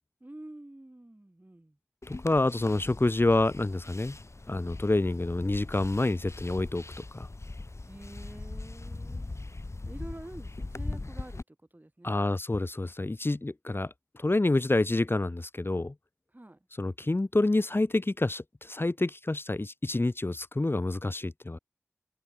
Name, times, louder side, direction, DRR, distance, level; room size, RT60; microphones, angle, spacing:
voice 1, 0.2-1.8 7.8-9.4 9.8-12.4 16.3-16.7, right 1 dB, 40° right, 5.0 m, -48 dB
sound 1, 2.0-11.4, left 2 dB, 85° left, 4.3 m, -41 dB
voice 2, 2.1-4.2 4.5-7.3 12.0-15.9 16.8-21.6, left 2 dB, 55° left, 1.0 m, -28 dB
wide cardioid pair, 45°, 5 cm